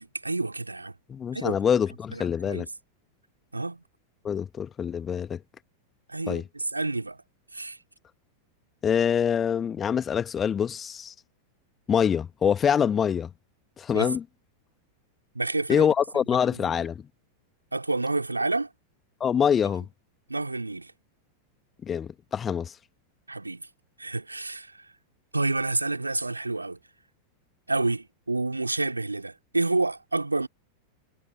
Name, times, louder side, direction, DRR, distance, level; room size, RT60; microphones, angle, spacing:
voice 1, 0.0-1.0 1.3-1.6 2.1-2.7 3.5-3.8 6.1-7.2 7.5-7.8 13.9-14.1 15.3-15.9 16.5-16.8 17.7-18.7 20.3-20.9 23.3-23.7 24.0-24.9 25.3-26.8 27.7-30.5, right 2 dB, 80° right, 3.6 m, -29 dB
voice 2, 1.1-2.7 4.2-5.4 6.3-6.4 8.8-11.1 11.9-13.3 13.8-14.2 15.7-17.0 19.2-19.8 21.8-22.7, left 8 dB, 20° left, 1.8 m, -25 dB
figure-of-eight pair, 90°, 0 cm